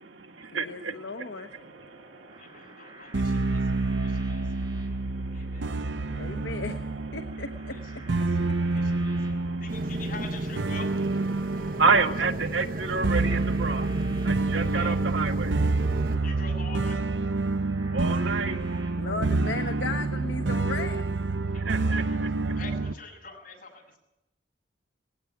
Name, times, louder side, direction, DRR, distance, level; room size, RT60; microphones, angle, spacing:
voice 1, 0.0-1.3 1.6-6.5 8.2-9.8 11.3-13.9 14.2-15.6 17.9-18.6 21.6-22.5, right 4 dB, 85° right, 5 dB, 2.0 m, -31 dB
voice 2, 0.5-1.5 6.1-8.3 19.0-21.1, left 3 dB, 70° left, 6 dB, 1.1 m, -36 dB
sound 1, 1.4-18.9, right 2 dB, 25° right, 7.1 m, -52 dB
voice 3, 2.3-4.5 5.2-5.8 7.7-8.3 8.6-9.3 9.6-10.9 14.7-15.0 16.2-17.0 21.4-24.0, left 4 dB, 50° left, 2 dB, 7.1 m, -45 dB
sound 2, 3.1-22.9, right 3 dB, 70° right, 0.7 m, -28 dB
sound 3, 9.7-16.2, right 1 dB, 50° right, 1.2 m, -34 dB
19.0 x 16.5 x 9.3 m, 0.90 s
head